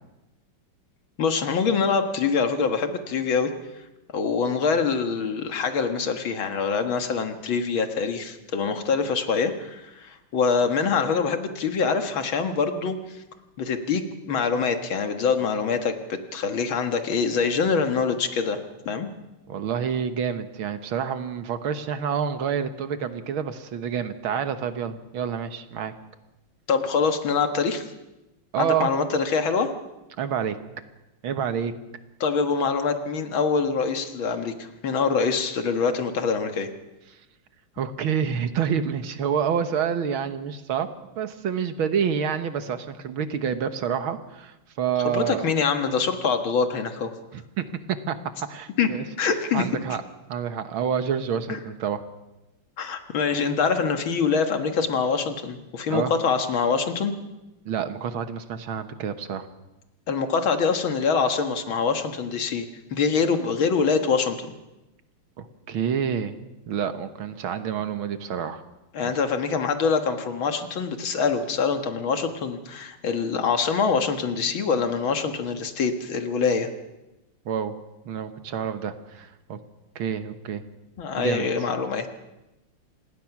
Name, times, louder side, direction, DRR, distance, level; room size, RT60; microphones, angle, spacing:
voice 1, 1.2-3.5 4.1-13.0 13.6-18.6 18.9-19.1 26.7-27.8 28.6-29.7 32.2-36.7 45.1-47.1 48.8-48.9 49.2-49.7 52.8-57.1 60.1-62.7 62.9-64.5 68.9-76.7 81.0-82.1, left 5 dB, 70° left, 6 dB, 2.3 m, -24 dB
voice 2, 19.5-25.9 28.5-28.9 30.2-30.6 31.2-31.7 37.8-40.9 41.2-45.5 47.3-48.2 48.5-49.0 49.5-50.0 50.3-52.0 55.9-56.1 57.7-59.5 65.4-66.4 66.7-68.6 69.0-69.1 77.5-77.8 78.1-79.6 80.0-80.6 81.2-81.5, right 7 dB, 75° right, 9 dB, 2.0 m, -28 dB
26.5 x 19.5 x 6.0 m, 1.0 s
omnidirectional pair, 2.3 m